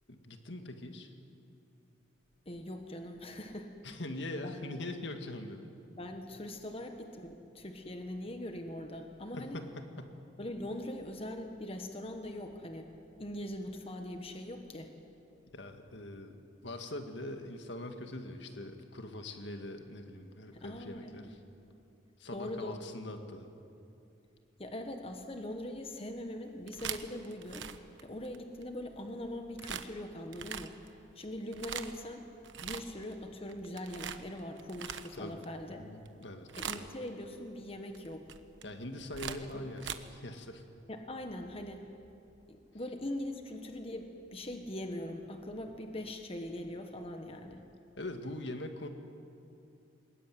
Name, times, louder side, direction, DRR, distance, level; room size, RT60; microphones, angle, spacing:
voice 1, 0.1-1.1 3.8-5.7 9.3-10.2 15.5-16.4 16.6-21.4 22.2-23.5 35.1-36.5 36.7-36.9 38.6-40.6 48.0-48.9, left 1 dB, 70° left, 6 dB, 1.9 m, -42 dB
voice 2, 2.4-3.7 4.4-4.5 6.0-9.6 10.4-12.9 13.2-14.9 20.5-21.3 22.3-22.8 24.6-27.7 28.0-30.7 31.1-32.2 32.6-35.9 36.6-38.3 39.3-39.6 40.9-41.9 42.5-47.6, left 1 dB, 30° left, 5 dB, 1.4 m, -41 dB
sound 1, 26.5-28.6 29.6-29.9 30.3-30.9 31.4-32.0 32.4-33.2 33.5-35.5 36.0-36.2 36.5-37.1 37.9-39.9, right 8 dB, 80° right, 1.1 m, -41 dB
22.0 x 20.5 x 9.3 m, 2.6 s
head